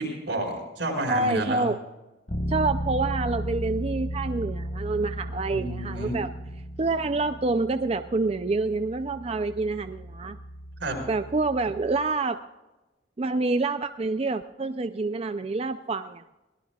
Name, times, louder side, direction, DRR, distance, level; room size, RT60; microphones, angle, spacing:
voice 1, 0.0-1.6 5.5-6.2 10.8-11.0, right 2 dB, 80° right, 1 dB, 5.0 m, -30 dB
voice 2, 1.1-1.8 2.5-6.3 6.8-10.4 11.1-12.4 13.2-16.2, right 3 dB, 35° right, 9 dB, 0.4 m, -27 dB
Bass guitar, 2.3-12.1, equal, 45° left, 1.2 m, -35 dB
22.5 x 17.5 x 2.4 m, 1.1 s
head